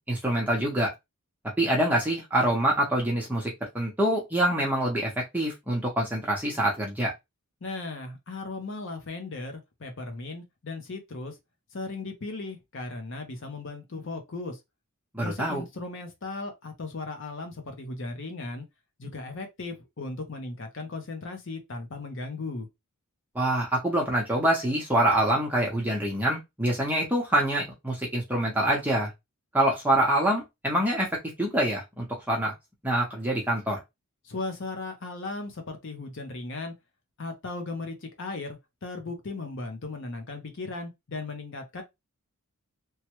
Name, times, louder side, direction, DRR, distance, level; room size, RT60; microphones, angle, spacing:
voice 1, 0.1-0.9 1.6-7.1 15.1-15.6 23.3-29.1 29.5-31.1 31.4-32.5 32.8-33.8, right 1 dB, 10° right, 0.7 m, -25 dB
voice 2, 7.6-11.3 11.7-14.6 15.2-18.7 19.0-22.7 34.2-36.7 37.2-41.8, left 3 dB, 55° left, 0.7 m, -37 dB
3.1 x 2.2 x 3.0 m
head